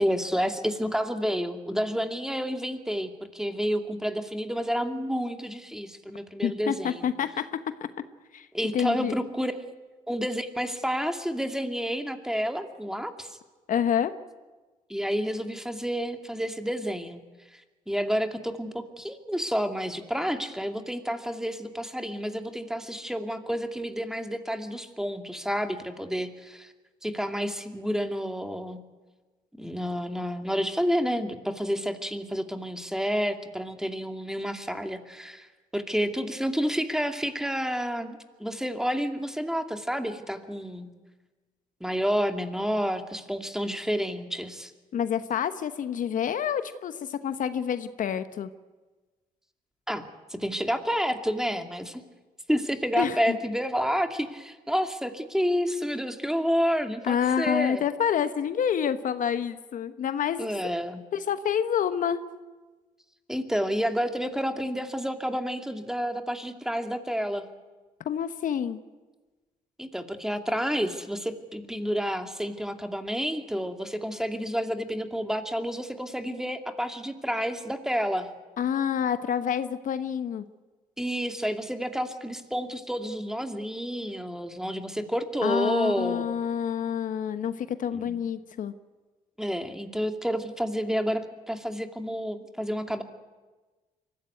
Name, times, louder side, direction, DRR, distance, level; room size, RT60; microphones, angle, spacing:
voice 1, 0.0-7.1 8.5-9.5 10.1-13.4 14.9-17.2 17.5-17.6 17.9-26.7 27.0-28.8 29.6-35.5 35.7-40.9 41.8-44.7 49.9-52.0 52.5-57.8 60.4-61.0 63.3-67.5 69.8-78.3 81.0-86.3 87.9-88.2 89.4-93.0, equal, 5° right, 6 dB, 2.5 m, -30 dB
voice 2, 6.4-7.5 8.3-8.5 8.7-9.2 13.7-14.1 44.9-48.5 53.0-53.4 57.0-60.7 61.1-62.2 68.0-68.8 78.6-80.4 85.4-88.7, left 8 dB, 60° left, 11 dB, 1.1 m, -28 dB
23.5 x 15.0 x 9.5 m, 1.3 s
supercardioid pair, 60°, 15 cm